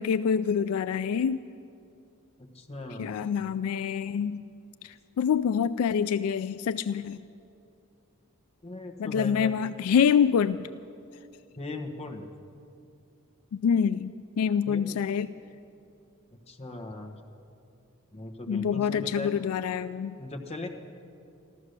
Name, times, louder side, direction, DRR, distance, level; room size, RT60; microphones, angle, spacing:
voice 1, 0.0-1.4 3.0-4.5 4.8-7.2 9.0-10.7 13.5-15.3 18.5-20.2, left 7 dB, 70° left, 14 dB, 0.3 m, -26 dB
voice 2, 2.5-3.2 8.6-9.5 11.6-12.3 14.7-15.0 16.5-17.2 18.1-19.3 20.2-20.7, left 2 dB, 30° left, 4 dB, 1.2 m, -38 dB
14.5 x 13.0 x 6.6 m, 2.6 s
head